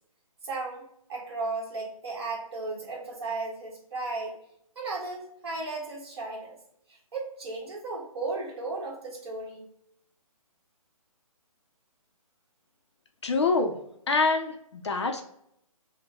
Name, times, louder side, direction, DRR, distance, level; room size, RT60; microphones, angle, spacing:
voice 1, 0.4-0.8 1.1-4.4 4.7-6.6 7.1-9.7, right 3 dB, 45° right, -2 dB, 1.6 m, -35 dB
voice 2, 13.2-13.7 14.1-15.2, left 3 dB, 50° left, 5 dB, 0.6 m, -25 dB
5.2 x 2.2 x 3.0 m, 0.72 s
hypercardioid pair, 170°, 19 cm